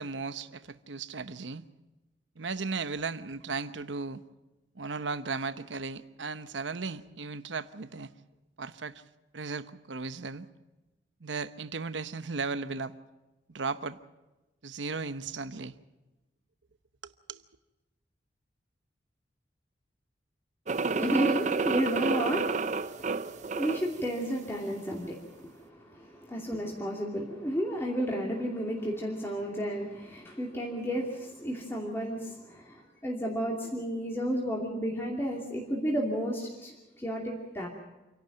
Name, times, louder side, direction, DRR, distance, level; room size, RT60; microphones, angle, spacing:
voice 1, 0.0-1.7 2.4-4.2 4.7-8.1 8.6-9.0 9.3-10.5 11.2-12.9 13.5-14.0 14.6-15.8 17.0-17.4, right 4 dB, 90° right, 12 dB, 1.0 m, -36 dB
voice 2, 20.7-37.7, equal, 15° left, -2 dB, 2.6 m, -32 dB
sound 1, 20.7-24.0, right 4 dB, 40° right, 0.6 m, -30 dB
28.0 x 11.5 x 9.0 m, 1.1 s
head